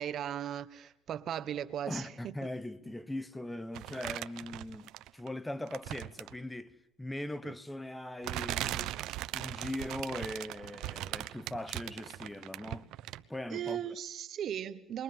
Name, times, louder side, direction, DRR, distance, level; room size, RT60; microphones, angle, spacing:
voice 1, 0.0-2.3 13.5-15.0, right 10 dB, 55° right, 1.2 m, -37 dB
voice 2, 1.9-9.0 9.3-12.9 13.3-14.0, left 1 dB, 10° left, 1.1 m, -40 dB
sound 1, 3.7-5.3 5.7-6.4 7.4-7.5 8.2-13.4 13.7-13.8, right 15 dB, 75° right, 0.9 m, -39 dB
29.5 x 22.5 x 7.5 m
cardioid pair, 105°, 0 cm